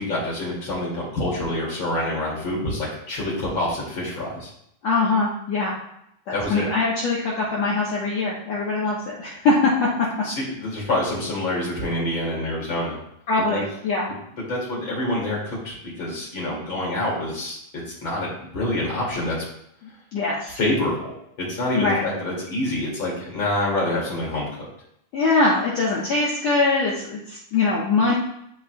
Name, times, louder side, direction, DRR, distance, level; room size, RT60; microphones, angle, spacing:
voice 1, 0.0-4.5 6.3-6.7 10.2-13.0 13.4-13.6 14.4-19.4 20.6-24.7, left 1 dB, 40° left, -5 dB, 2.8 m, -27 dB
voice 2, 4.8-5.8 6.3-9.5 9.8-9.9 13.3-14.1 20.1-20.6 21.7-22.0 25.1-28.2, left 3 dB, 60° left, -6 dB, 2.0 m, -22 dB
12.5 x 4.4 x 2.3 m, 0.75 s
omnidirectional pair, 3.9 m